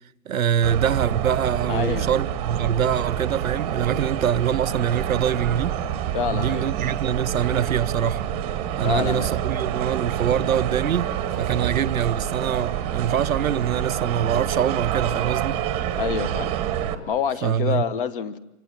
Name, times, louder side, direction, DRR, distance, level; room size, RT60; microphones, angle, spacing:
voice 1, 0.3-5.7 6.3-8.2 8.8-11.1 11.4-15.6 17.4-17.8, right 9 dB, 65° right, 1.0 m, -24 dB
sound 1, 0.6-16.9, right 10 dB, 10° right, 1.1 m, -27 dB
voice 2, 1.7-2.1 6.1-6.7 8.8-9.3 16.0-16.6 17.1-18.4, left 7 dB, 35° left, 1.3 m, -27 dB
29.0 x 25.0 x 7.3 m
hypercardioid pair, 155°, 45 cm